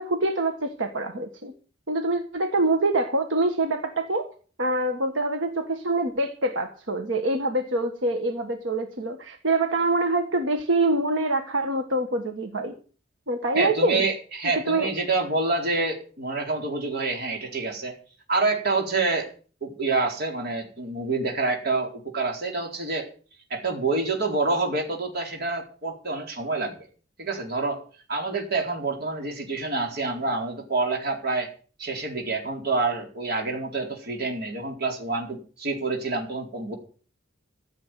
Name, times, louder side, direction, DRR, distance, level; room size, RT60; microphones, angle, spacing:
voice 1, 0.0-1.5 1.9-4.3 4.6-12.7 13.3-14.1 14.7-14.9, right 2 dB, 85° right, 5 dB, 1.7 m, -25 dB
voice 2, 13.5-17.9 18.3-19.3 19.6-23.1 23.5-26.8 27.2-27.8 28.1-31.5 31.8-36.7, right 3 dB, 55° right, 2 dB, 4.5 m, -27 dB
15.0 x 7.4 x 9.2 m, 0.40 s
head